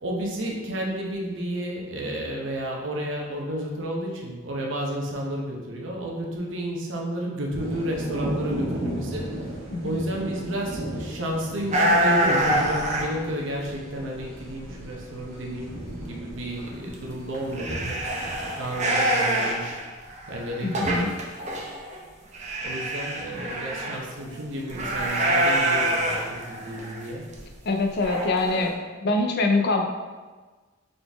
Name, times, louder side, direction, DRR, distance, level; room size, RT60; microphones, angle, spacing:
voice 1, 0.0-18.1 18.6-19.8 20.3-21.1 22.6-27.3, equal, 65° right, -1 dB, 0.8 m, -32 dB
sound 1, 7.6-18.8, right 1 dB, 80° right, 1.3 m, -35 dB
sound 2, 11.7-13.1 13.7-14.7 15.0-15.1 15.5-15.6 15.8-16.0 16.3-16.4 16.9-17.0 17.3-22.0 22.3-24.0 24.7-27.0 27.3-27.4 28.0-28.7, right 1 dB, 35° right, 0.6 m, -25 dB
voice 2, 20.6-21.1 27.7-28.7 29.0-29.8, left 3 dB, 55° left, 4 dB, 0.5 m, -24 dB
3.9 x 3.8 x 3.4 m, 1.4 s
head